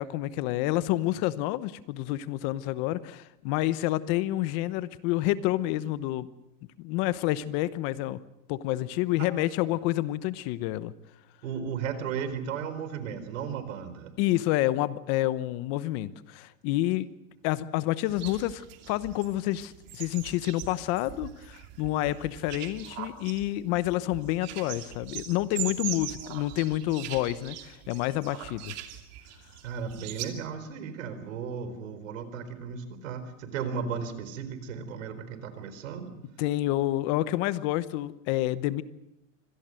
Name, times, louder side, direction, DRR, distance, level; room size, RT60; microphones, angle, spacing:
voice 1, 0.0-6.3 6.8-8.2 8.5-10.9 14.2-17.1 17.4-28.8 36.4-38.8, left 15 dB, 40° left, 16 dB, 1.0 m, -28 dB
voice 2, 11.4-14.1 29.6-36.2, right 6 dB, 75° right, 11 dB, 4.3 m, -35 dB
sound 1, 18.1-30.3, right 12 dB, 40° right, 2.7 m, -41 dB
25.5 x 18.0 x 7.7 m, 0.86 s
supercardioid pair, 150°, 39 cm